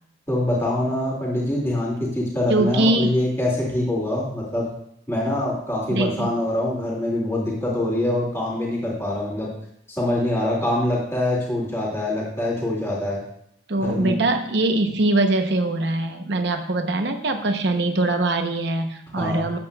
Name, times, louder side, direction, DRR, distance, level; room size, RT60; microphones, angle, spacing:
voice 1, 0.3-4.7 5.1-9.5 9.9-13.2 13.8-14.1 19.2-19.4, left 1 dB, 15° left, -5 dB, 2.3 m, -24 dB
voice 2, 2.5-3.1 5.9-6.3 13.7-19.6, right 2 dB, 60° right, 5 dB, 0.8 m, -22 dB
13.0 x 8.5 x 2.4 m, 0.73 s
head